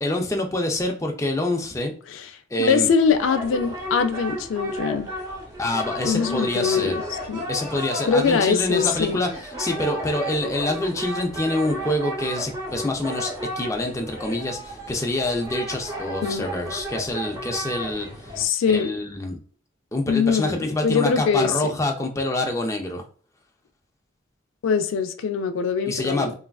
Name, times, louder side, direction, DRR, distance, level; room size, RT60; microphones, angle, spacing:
voice 1, 0.0-1.9 2.5-2.9 5.6-7.0 7.5-18.3 18.7-19.4 19.9-23.0 25.9-26.3, left 1 dB, 15° left, 0.4 m, -26 dB
voice 2, 2.6-5.1 6.0-7.5 8.1-9.2 16.2-16.5 18.4-18.9 20.1-21.7 24.6-26.3, left 6 dB, 80° left, 0.3 m, -22 dB
sound 1, 3.0-18.5, equal, 20° right, 0.7 m, -33 dB
3.1 x 2.4 x 2.3 m
head